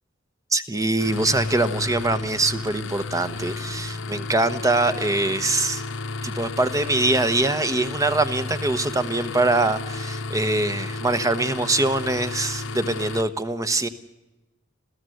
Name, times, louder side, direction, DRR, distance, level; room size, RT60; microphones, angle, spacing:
voice 1, 0.5-5.8 6.2-13.9, right 2 dB, 15° right, 11 dB, 1.1 m, -23 dB
sound 1, 1.0-13.2, left 3 dB, 75° left, 1.2 m, -32 dB
28.0 x 15.5 x 7.9 m, 1.0 s
head